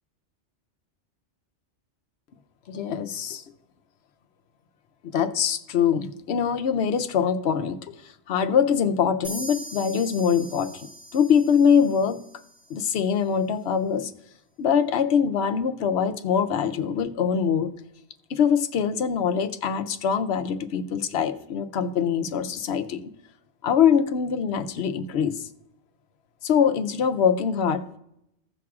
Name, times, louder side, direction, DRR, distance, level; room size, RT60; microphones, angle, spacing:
voice 1, 2.7-3.4 5.1-7.9 8.3-12.2 12.7-14.1 14.6-17.7 18.3-23.0 23.6-25.5 26.4-27.8, left 7 dB, 65° left, 9 dB, 0.9 m, -23 dB
sound 1, 9.2-12.8, equal, 40° right, 1.9 m, -41 dB
16.0 x 6.0 x 2.4 m, 0.80 s
omnidirectional pair, 1.2 m